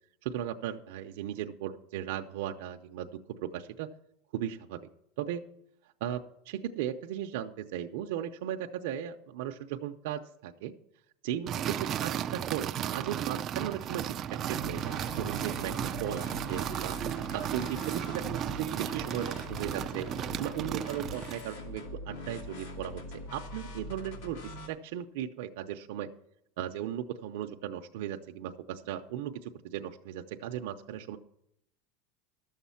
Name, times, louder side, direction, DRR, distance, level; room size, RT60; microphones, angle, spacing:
voice 1, 0.2-3.1 3.4-3.9 4.3-4.8 5.2-5.4 6.0-10.7 11.2-17.0 17.3-20.1 20.4-23.0 23.3-26.1 26.6-31.2, right 10 dB, 65° right, 3 dB, 0.6 m, -37 dB
sound 1, 11.5-21.5, right 10 dB, 25° right, 0.3 m, -35 dB
sound 2, 14.5-24.7, left 2 dB, 75° left, 2.6 m, -43 dB
12.5 x 7.2 x 5.7 m, 0.77 s
supercardioid pair, 175°, 0 cm